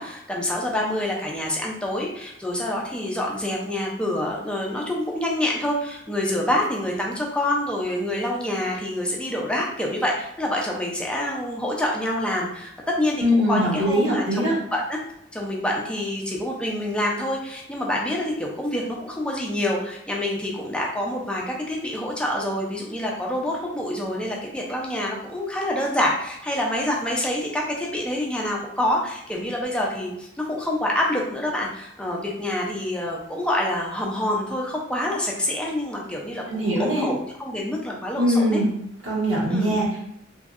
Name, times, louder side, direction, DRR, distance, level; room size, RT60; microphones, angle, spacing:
voice 1, 0.0-15.0 15.3-38.6 39.5-39.7, left 1 dB, 5° left, -2 dB, 0.5 m, -27 dB
voice 2, 13.2-14.6 36.5-37.1 38.2-38.7 39.0-40.0, equal, 75° right, -7 dB, 1.4 m, -22 dB
3.1 x 2.6 x 2.4 m, 0.78 s
head